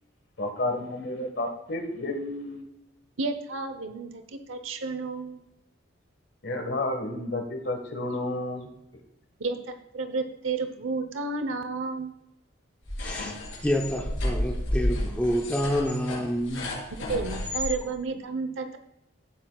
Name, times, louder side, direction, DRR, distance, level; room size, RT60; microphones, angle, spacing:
voice 1, 0.4-2.6 6.4-8.7, left 2 dB, 60° left, 5 dB, 1.5 m, -31 dB
voice 2, 3.2-5.4 9.4-12.1 17.1-18.8, right 3 dB, 85° right, 8 dB, 0.9 m, -31 dB
sound 1, 12.8-17.7, left 1 dB, 85° left, 3.8 m, -31 dB
voice 3, 13.0-16.8, equal, 10° left, 0 dB, 0.8 m, -28 dB
14.5 x 7.9 x 2.4 m, 0.87 s
head